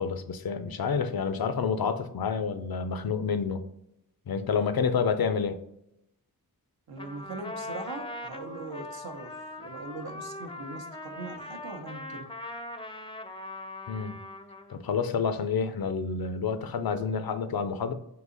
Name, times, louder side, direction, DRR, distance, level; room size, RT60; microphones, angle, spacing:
voice 1, 0.0-3.7 4.3-5.6 13.9-14.2 14.7-17.9, left 6 dB, 75° left, 10 dB, 0.5 m, -29 dB
voice 2, 6.9-9.3 9.6-12.3 16.7-16.8, right 3 dB, 80° right, 4 dB, 0.7 m, -40 dB
Trumpet, 7.0-14.8, left 2 dB, 15° left, 0.4 m, -41 dB
3.9 x 2.8 x 3.8 m, 0.80 s
wide cardioid pair, 45°, 37 cm